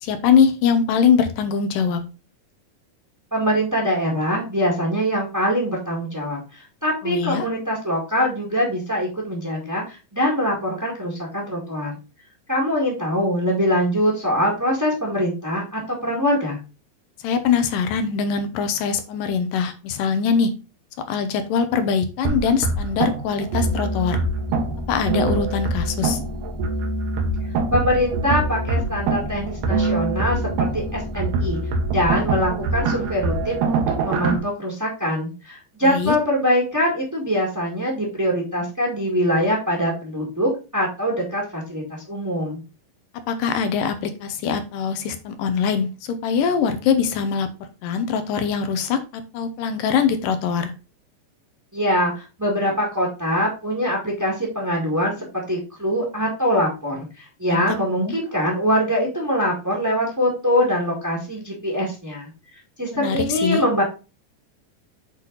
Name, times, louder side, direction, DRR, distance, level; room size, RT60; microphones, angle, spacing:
voice 1, 0.0-2.0 7.0-7.5 17.2-20.5 21.1-24.2 24.9-26.2 35.8-36.1 43.3-49.0 49.3-50.7 57.5-58.1 62.9-63.6, left 6 dB, 80° left, 9 dB, 2.4 m, -22 dB
voice 2, 3.3-11.9 12.5-16.6 27.7-31.6 31.9-42.6 51.7-62.3 62.8-63.8, equal, 10° right, -3 dB, 1.1 m, -23 dB
sound 1, 22.3-34.4, right 3 dB, 75° right, 2.7 m, -24 dB
8.2 x 4.0 x 4.0 m, 0.31 s
omnidirectional pair, 3.9 m